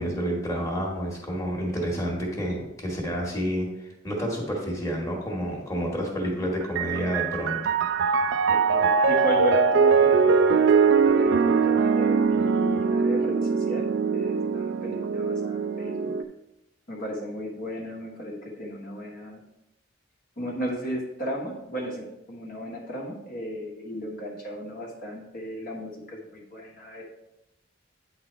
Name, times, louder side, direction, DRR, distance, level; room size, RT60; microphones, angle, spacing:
voice 1, 0.0-7.6, equal, 15° left, -2 dB, 1.4 m, -29 dB
Piano, 6.6-16.2, right 5 dB, 70° right, 0.4 m, -22 dB
voice 2, 8.5-13.9 14.1-16.1 16.9-19.4 20.4-27.0, equal, 50° left, -2 dB, 1.3 m, -35 dB
9.1 x 4.0 x 4.3 m, 0.88 s
head